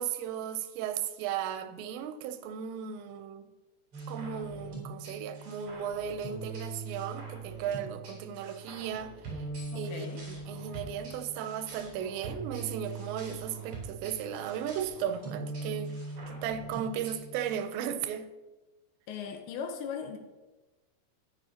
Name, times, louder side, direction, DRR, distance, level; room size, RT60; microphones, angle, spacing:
voice 1, 0.0-3.5 4.1-9.5 9.8-15.9 16.3-18.3, right 9 dB, 90° right, 2.9 m, -36 dB
sound 1, 3.9-17.6, right 3 dB, 45° right, 4.6 m, -42 dB
voice 2, 9.7-10.2 19.1-20.2, left 7 dB, 85° left, 3.3 m, -38 dB
12.5 x 9.7 x 2.9 m
omnidirectional pair, 4.9 m